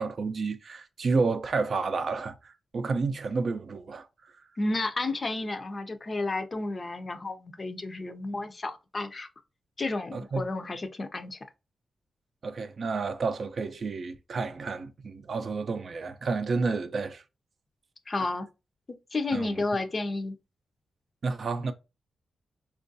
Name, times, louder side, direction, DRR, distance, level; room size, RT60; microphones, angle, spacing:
voice 1, 0.0-4.1 10.1-10.4 12.4-17.2 19.3-19.5 21.2-21.7, right 4 dB, 55° right, 0.4 m, -30 dB
voice 2, 4.6-9.3 9.8-11.4 18.1-18.5 19.1-20.4, left 2 dB, 35° left, 0.5 m, -31 dB
4.4 x 2.4 x 2.6 m
cardioid pair, 100°, 0 cm